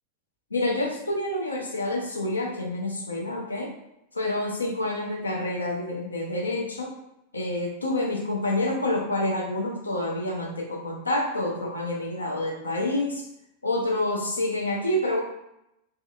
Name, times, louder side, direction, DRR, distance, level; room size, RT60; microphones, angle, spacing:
voice 1, 0.5-3.7 4.1-6.9 7.3-13.2 13.6-15.2, left 1 dB, 80° left, -1 dB, 0.6 m, -28 dB
3.0 x 2.8 x 2.3 m, 0.83 s
figure-of-eight pair, 90°, 0 cm